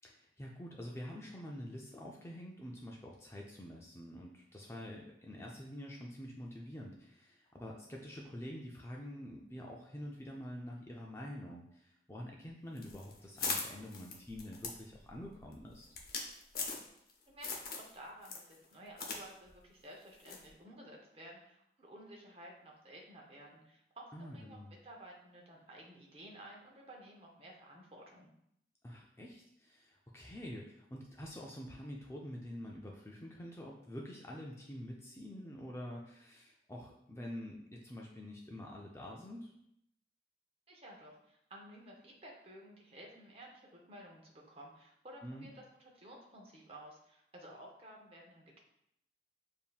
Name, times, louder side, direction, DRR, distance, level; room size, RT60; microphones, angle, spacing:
voice 1, 0.0-15.9 24.1-24.7 28.8-39.5 45.2-45.5, equal, 15° left, -1 dB, 0.4 m, -47 dB
sound 1, 12.8-17.1 17.4-17.9 18.2-19.2 19.5-19.6 20.3-20.5, left 4 dB, 55° left, 0.7 m, -40 dB
voice 2, 17.3-24.6 24.8-28.3 40.7-48.6, right 1 dB, 35° right, -1 dB, 0.8 m, -54 dB
7.0 x 2.7 x 2.3 m, 0.76 s
head